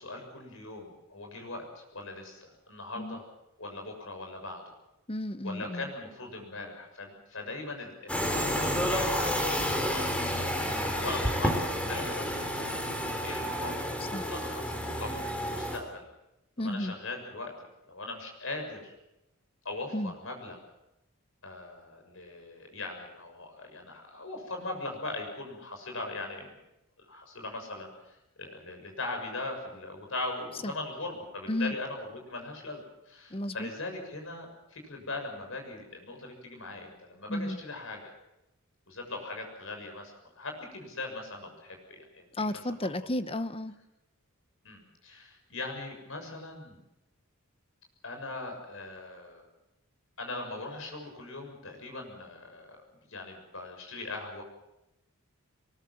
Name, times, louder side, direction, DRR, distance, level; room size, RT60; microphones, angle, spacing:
voice 1, 0.0-3.3 3.6-4.6 5.4-12.8 13.2-16.0 16.6-18.9 19.6-20.6 21.4-26.5 27.0-38.1 38.9-42.6 44.6-46.8 48.0-49.5 50.2-52.8 53.1-54.4, left 2 dB, 65° left, 4 dB, 6.9 m, -40 dB
voice 2, 5.1-5.9 14.1-14.3 16.6-16.9 19.9-20.1 30.6-30.7 31.5-31.7 33.3-33.7 37.3-37.6 42.3-43.7, left 1 dB, 25° left, 13 dB, 0.9 m, -33 dB
sound 1, 8.1-15.8, equal, 5° left, 3.6 m, -30 dB
23.0 x 21.0 x 7.8 m, 0.90 s
head